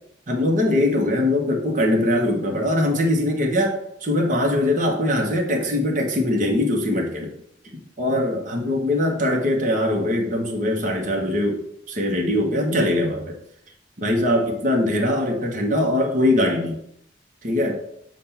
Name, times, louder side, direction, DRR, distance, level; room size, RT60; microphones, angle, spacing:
voice 1, 0.3-7.3 8.0-11.6 11.9-13.4 14.0-16.8 17.4-17.8, left 1 dB, 45° right, 1 dB, 1.1 m, -22 dB
7.3 x 2.5 x 5.7 m, 0.71 s
head